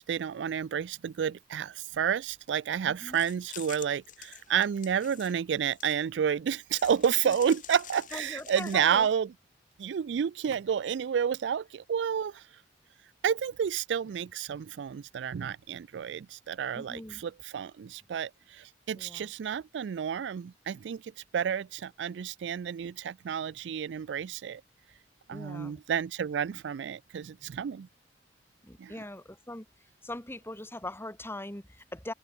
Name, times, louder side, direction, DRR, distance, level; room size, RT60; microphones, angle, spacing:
voice 1, 0.0-9.3 9.8-12.4 13.2-24.6 25.3-27.9 28.8-28.9, right 8 dB, 85° right, 0.4 m, -30 dB
voice 2, 2.9-3.2 7.2-7.3 8.1-9.1 16.7-17.2 19.0-19.3 25.3-25.7 28.6-29.7 30.0-32.1, left 1 dB, 15° left, 2.4 m, -41 dB
sound 1, 3.1-6.2 6.8-9.1, left 11 dB, 50° left, 2.5 m, -47 dB
head